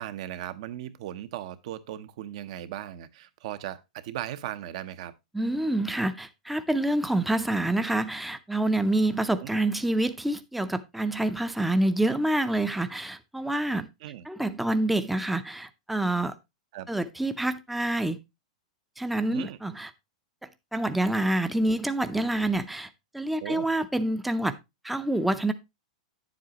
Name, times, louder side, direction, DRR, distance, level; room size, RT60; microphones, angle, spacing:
voice 1, 0.0-5.1 9.4-9.5 14.0-14.2 16.7-16.9 19.3-19.6 23.4-23.7, right 12 dB, 60° right, 0.9 m, -37 dB
voice 2, 5.3-13.9 14.3-16.4 16.9-18.2 19.0-19.9 20.7-24.6 24.8-25.5, right 1 dB, 5° right, 0.6 m, -27 dB
9.3 x 7.6 x 2.9 m
hypercardioid pair, 140°, 4 cm